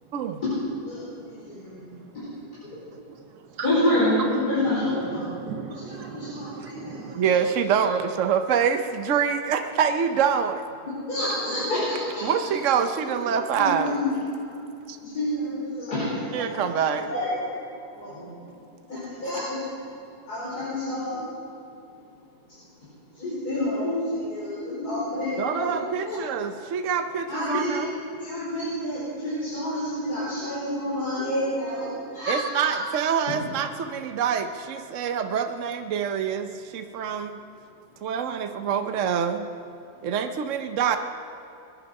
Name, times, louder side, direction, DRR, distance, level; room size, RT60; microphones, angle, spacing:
voice 1, 3.6-5.2 6.3-6.4 11.1-12.2 13.6-13.7 15.1-16.4 17.1-17.3 18.9-19.4 20.3-21.2 23.2-24.0 24.3-25.8 26.1-26.2 27.3-27.8 28.3-31.8 32.1-32.3, left 1 dB, 70° left, -10 dB, 5.0 m, -27 dB
voice 2, 4.6-7.2, right 7 dB, 80° right, 5 dB, 1.5 m, -37 dB
voice 3, 7.1-10.6 12.2-13.9 14.9-15.0 16.3-17.1 25.4-27.9 32.3-37.4 38.0-39.5 40.0-41.0, right 7 dB, 60° right, 7 dB, 1.0 m, -25 dB
22.0 x 10.5 x 5.4 m, 2.8 s
omnidirectional pair, 1.7 m